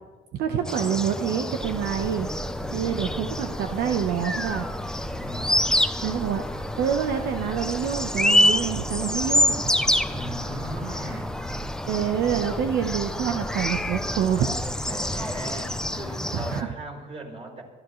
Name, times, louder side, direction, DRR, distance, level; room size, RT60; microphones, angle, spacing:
voice 1, 0.3-2.3 2.7-4.7 6.0-6.4 6.8-9.6 11.0-11.2 11.9-14.5 16.3-16.7, right 8 dB, 75° right, 5 dB, 1.1 m, -27 dB
sound 1, 0.6-16.6, left 1 dB, 5° left, 0.7 m, -27 dB
sound 2, 1.6-16.1, right 1 dB, 20° right, 2.4 m, -41 dB
voice 2, 2.7-3.3 5.1-5.6 10.0-11.4 14.8-17.6, right 2 dB, 35° right, 0 dB, 4.3 m, -38 dB
27.0 x 13.5 x 3.2 m, 1.3 s
cardioid pair, 110°, 17 cm